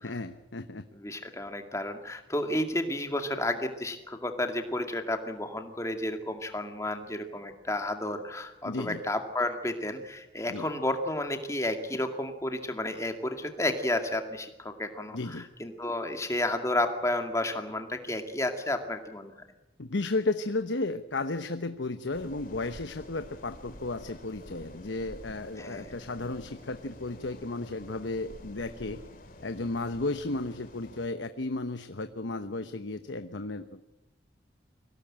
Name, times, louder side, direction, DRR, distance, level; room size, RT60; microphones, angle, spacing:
voice 1, 0.0-0.9 8.7-9.0 10.5-10.7 15.1-15.5 19.8-29.0 29.4-33.9, left 2 dB, 85° left, 10 dB, 1.0 m, -34 dB
voice 2, 0.9-19.3 25.6-25.9, left 1 dB, 15° left, 6 dB, 2.2 m, -32 dB
sound 1, 22.1-31.1, left 1 dB, 50° left, 2.5 m, -49 dB
24.0 x 17.0 x 8.9 m, 1.0 s
head